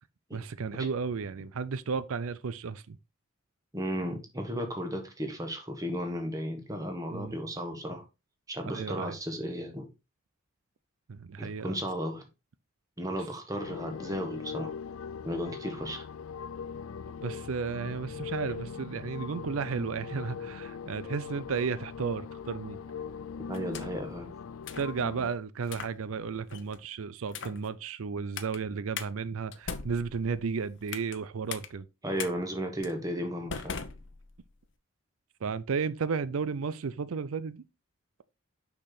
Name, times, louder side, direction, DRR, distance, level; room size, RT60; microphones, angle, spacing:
voice 1, 0.3-3.0 7.1-7.3 8.7-9.1 11.1-11.8 17.2-22.8 24.8-31.8 35.4-37.6, right 5 dB, 90° right, 0.5 m, -33 dB
voice 2, 3.7-8.0 8.5-9.9 11.4-12.2 13.0-14.7 15.2-16.1 23.5-24.3 32.0-33.8, equal, 15° right, 1.5 m, -34 dB
sound 1, 13.6-25.3, left 6 dB, 85° left, 0.4 m, -40 dB
sound 2, 23.5-24.1 24.7-24.9 25.6-26.0 26.5-26.8 27.3-27.7 28.4-28.6 29.0-29.1 29.5-31.2 31.5-31.7 32.2-32.3 32.8-33.0 33.5-34.6, left 6 dB, 60° left, 0.8 m, -40 dB
6.4 x 6.0 x 3.9 m
head